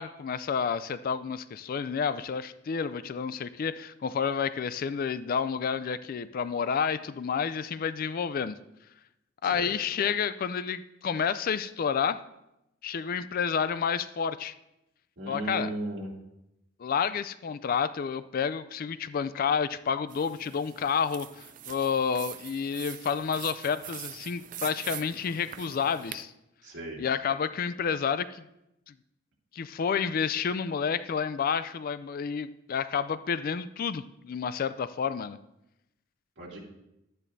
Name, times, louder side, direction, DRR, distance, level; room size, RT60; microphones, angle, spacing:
voice 1, 0.0-8.6 9.4-12.2 12.8-14.5 15.3-15.7 16.8-26.3 27.0-28.4 29.5-35.4, left 6 dB, 45° left, 14 dB, 0.3 m, -30 dB
voice 2, 15.2-16.1 26.6-27.0 36.4-36.6, right 2 dB, 60° right, -4 dB, 2.7 m, -36 dB
sound 1, 20.1-26.2, right 11 dB, 40° right, 0.4 m, -43 dB
11.5 x 9.9 x 2.6 m, 0.88 s
head